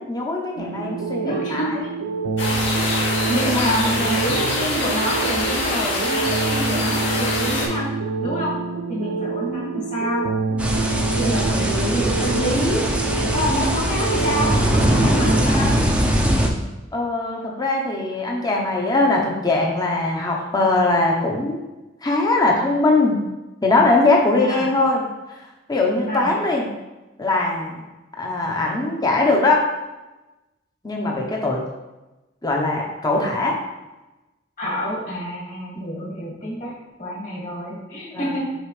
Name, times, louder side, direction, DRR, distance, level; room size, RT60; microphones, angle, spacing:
voice 1, 0.0-1.7 3.5-3.7 11.0-11.2 16.9-21.6 22.0-23.2 23.6-25.0 25.3-25.4 25.7-26.7 27.2-27.8 28.2-29.6 30.8-31.6 32.4-33.6 38.1-38.3, left 2 dB, 20° left, -1 dB, 0.9 m, -21 dB
sound 1, 0.6-15.5, right 4 dB, 80° right, 0.4 m, -26 dB
voice 2, 1.2-1.9 2.4-2.6 3.3-7.9 8.2-8.5 8.9-10.3 11.1-12.8 13.3-15.7 24.4-24.7 26.1-26.3 34.6-36.7 37.0-38.5, equal, 40° left, -4 dB, 2.2 m, -27 dB
sound 2, 2.4-7.7, left 2 dB, 65° left, 2.2 m, -24 dB
sound 3, 10.6-16.5, equal, 5° right, 0.6 m, -21 dB
6.5 x 4.9 x 3.3 m, 1.1 s
head